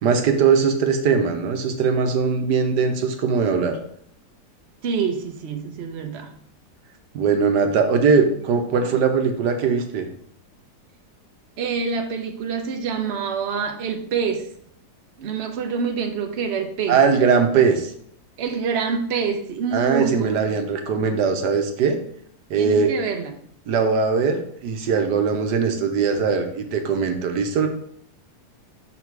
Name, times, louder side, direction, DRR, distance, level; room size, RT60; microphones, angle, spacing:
voice 1, 0.0-3.8 7.1-10.1 16.9-17.9 19.7-22.0 22.5-22.9 23.7-27.7, right 5 dB, 80° right, 5 dB, 1.5 m, -20 dB
voice 2, 4.8-6.3 8.7-8.9 11.6-14.5 15.2-17.0 18.4-20.6 20.9-21.2 22.6-23.3, right 6 dB, 50° right, 4 dB, 0.9 m, -26 dB
6.1 x 4.1 x 4.6 m, 0.63 s
omnidirectional pair, 1.8 m